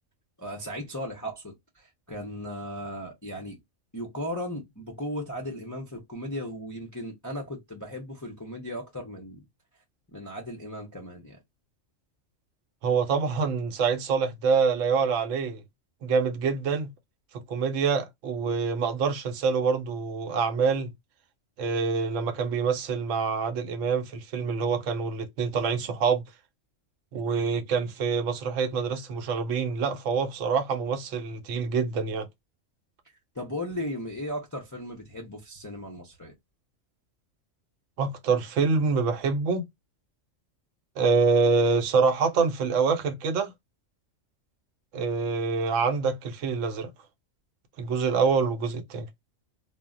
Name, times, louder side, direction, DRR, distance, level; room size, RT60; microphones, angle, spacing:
voice 1, 0.4-3.6 3.9-9.4 10.1-11.4 33.3-36.3, equal, 30° left, 0.3 m, -36 dB
voice 2, 12.8-15.6 16.0-16.9 17.3-20.9 21.6-26.2 27.1-32.3 38.0-39.6 41.0-43.5 44.9-46.9 47.8-49.1, right 5 dB, 80° right, 0.9 m, -26 dB
2.1 x 2.0 x 3.5 m
omnidirectional pair, 1.3 m